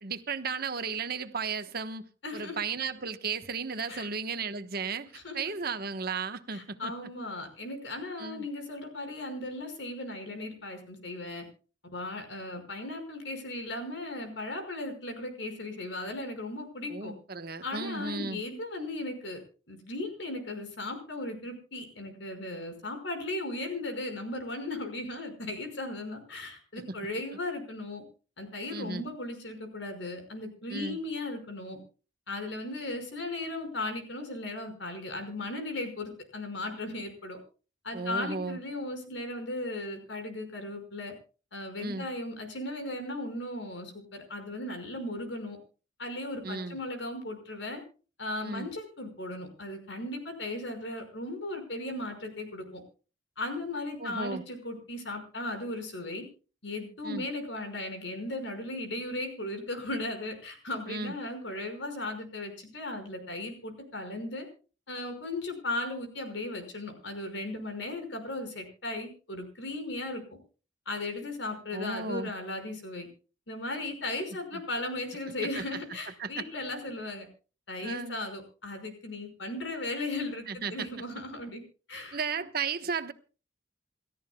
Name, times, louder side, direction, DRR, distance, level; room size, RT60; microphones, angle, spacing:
voice 1, 0.0-2.0 2.3-6.9 8.2-8.4 16.9-18.4 26.9-27.0 28.7-29.1 30.7-31.0 37.9-38.6 41.8-42.1 46.4-46.8 48.4-48.7 54.0-54.4 57.0-57.2 60.9-61.1 71.7-72.3 74.5-74.6 75.4-75.7 76.2-76.4 77.8-78.2 80.5-80.9 82.1-83.1, right 4 dB, 50° right, 1.2 m, -34 dB
voice 2, 2.2-2.6 3.9-4.1 5.1-5.4 6.5-11.5 11.9-17.1 17.6-19.4 19.7-28.0 28.4-31.8 32.3-37.4 37.8-41.1 41.5-45.6 46.0-47.8 48.2-52.8 53.4-56.3 56.6-64.5 64.9-70.2 70.9-73.1 73.5-77.3 77.7-81.6 81.9-82.2, left 2 dB, 70° left, 5.4 m, -37 dB
29.0 x 13.5 x 2.3 m
head